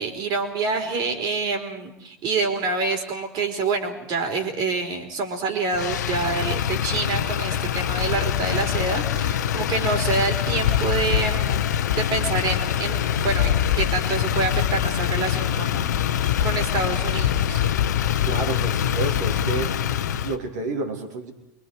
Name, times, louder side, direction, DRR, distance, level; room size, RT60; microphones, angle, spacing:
voice 1, 0.0-17.6, right 4 dB, 50° right, 4 dB, 4.2 m, -27 dB
Motor vehicle (road), 5.7-20.4, left 10 dB, 70° left, 0.8 m, -24 dB
voice 2, 18.2-19.7 20.1-21.3, right 3 dB, 70° right, 2 dB, 3.6 m, -30 dB
29.0 x 24.0 x 4.7 m, 0.79 s
figure-of-eight pair, 70°, 10 cm